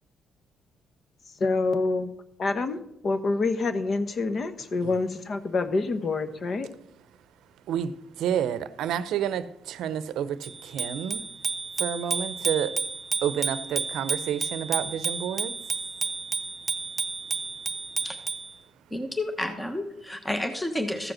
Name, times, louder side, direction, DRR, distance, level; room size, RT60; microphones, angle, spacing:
voice 1, 1.4-2.1 2.4-2.8 3.0-6.7, left 3 dB, 45° left, 1.1 m, -26 dB
voice 2, 7.7-11.2 11.8-12.8 13.2-15.6, right 9 dB, 80° right, 0.6 m, -30 dB
Bicycle bell, 10.4-18.5, right 4 dB, 25° right, 0.8 m, -31 dB
voice 3, 18.9-21.1, left 1 dB, 10° left, 1.2 m, -30 dB
14.5 x 4.9 x 6.4 m
cardioid pair, 90°, 0 cm